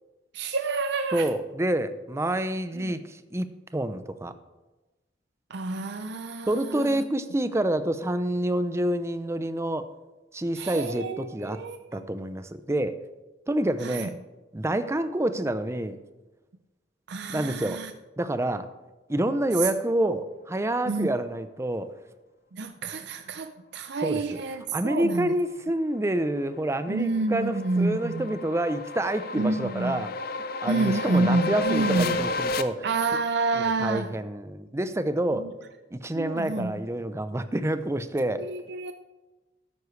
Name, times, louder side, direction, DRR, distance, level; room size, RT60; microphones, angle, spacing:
voice 1, 0.3-1.3 2.8-3.0 5.5-7.0 10.6-12.0 13.8-14.1 17.1-17.9 20.9-21.1 22.5-25.3 26.9-28.2 29.3-30.0 30.7-32.3 32.8-34.1 35.3-35.5 36.1-36.7 38.4-38.9, right 3 dB, 65° right, 8 dB, 0.6 m, -28 dB
voice 2, 1.1-4.3 6.5-9.9 10.3-11.6 11.9-13.0 13.5-14.1 14.5-16.0 17.3-17.8 18.2-18.7 19.1-21.9 24.0-24.4 24.7-30.1 30.6-32.9 33.5-35.5 35.9-38.5, right 1 dB, 15° right, 11 dB, 0.5 m, -28 dB
sound 1, 26.0-32.6, left 3 dB, 55° left, 0.5 m, -32 dB
13.0 x 9.6 x 3.2 m, 1.1 s
head